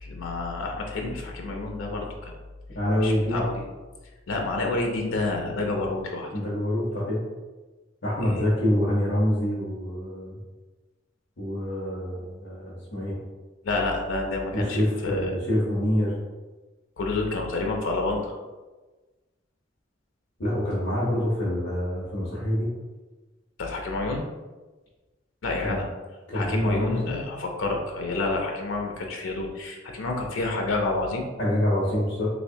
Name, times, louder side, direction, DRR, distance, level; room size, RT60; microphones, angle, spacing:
voice 1, 0.0-2.3 3.0-3.6 4.3-6.3 8.2-8.4 13.6-15.3 17.0-18.3 23.6-24.2 25.4-25.9 26.3-31.3, left 2 dB, 90° left, 1 dB, 0.5 m, -29 dB
voice 2, 2.7-3.4 6.3-7.2 8.0-10.3 11.4-13.1 14.5-16.1 20.4-22.7 25.6-25.8 26.3-27.2 31.4-32.3, equal, 70° left, -8 dB, 0.8 m, -26 dB
3.3 x 3.1 x 2.6 m, 1.2 s
head